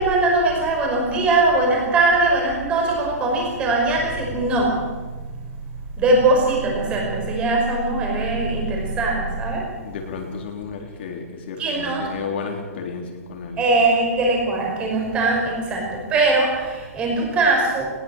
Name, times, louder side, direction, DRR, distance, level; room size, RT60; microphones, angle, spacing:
voice 1, 0.0-4.9 6.0-9.7 11.6-12.1 13.6-17.9, right 2 dB, 15° right, 0 dB, 5.5 m, -21 dB
voice 2, 9.8-13.6, left 5 dB, 40° left, 2 dB, 3.8 m, -32 dB
21.0 x 20.5 x 7.4 m, 1.4 s
hypercardioid pair, 175°, 9 cm